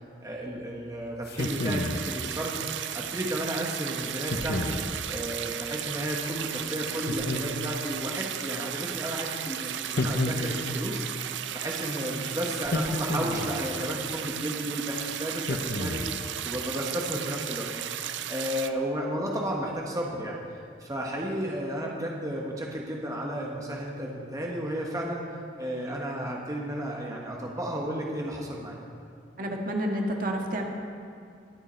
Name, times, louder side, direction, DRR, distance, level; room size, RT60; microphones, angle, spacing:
voice 1, 0.2-2.6 2.9-4.8 5.1-11.2 11.5-20.4 20.8-25.3 25.6-28.8, equal, 20° right, -2 dB, 1.2 m, -33 dB
sound 1, 1.3-2.1 4.3-4.9 7.1-7.9 10.0-10.8 12.6-13.6 15.5-16.2, left 2 dB, 60° left, 0.9 m, -30 dB
sound 2, 1.4-18.7, right 10 dB, 80° right, 0.5 m, -35 dB
voice 2, 29.4-30.6, equal, 50° right, 1 dB, 1.5 m, -29 dB
22.5 x 7.9 x 4.4 m, 2.4 s
head